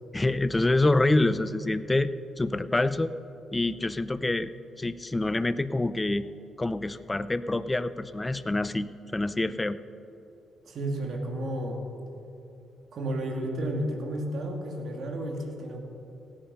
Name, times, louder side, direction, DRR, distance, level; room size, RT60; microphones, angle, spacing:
voice 1, 0.1-3.1 3.5-4.5 4.8-6.3 6.6-9.8, left 2 dB, 20° left, 14 dB, 0.5 m, -26 dB
voice 2, 10.6-11.8 12.9-15.8, right 1 dB, 65° right, 2 dB, 2.3 m, -32 dB
16.5 x 8.7 x 5.5 m, 2.7 s
cardioid pair, 80°, 0 cm